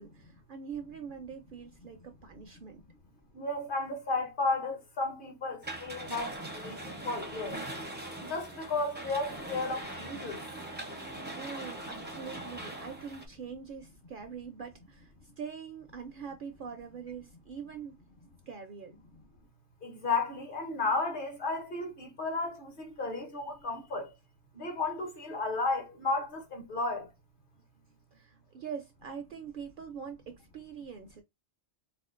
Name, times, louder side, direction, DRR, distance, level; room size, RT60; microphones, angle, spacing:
voice 1, 0.0-2.8 11.3-17.9 18.5-19.0 28.1-31.2, right 6 dB, 60° right, 0.6 m, -43 dB
voice 2, 3.3-7.6 8.2-10.4 19.8-24.1 24.5-27.1, left 3 dB, 50° left, 0.9 m, -33 dB
sound 1, 5.6-13.3, right 1 dB, 15° right, 0.4 m, -41 dB
4.2 x 2.2 x 2.5 m
omnidirectional pair, 1.2 m